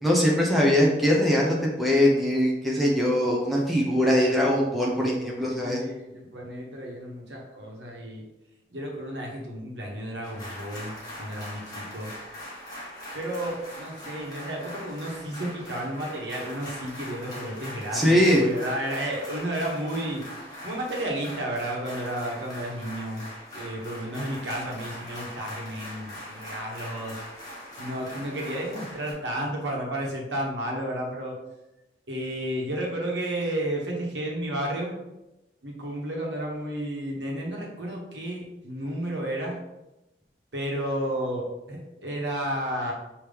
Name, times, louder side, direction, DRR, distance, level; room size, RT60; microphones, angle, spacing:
voice 1, 0.0-5.8 17.9-18.4, equal, ahead, -4 dB, 0.8 m, -22 dB
voice 2, 5.2-8.2 8.7-10.9 11.2-12.1 13.1-20.2 20.6-27.2 27.8-31.4 32.1-35.0 35.6-39.6 40.5-42.9, right 1 dB, 90° right, -1 dB, 1.1 m, -32 dB
sound 1, 10.2-29.1, equal, 20° left, 1.4 m, -41 dB
5.2 x 2.9 x 3.4 m, 0.96 s
head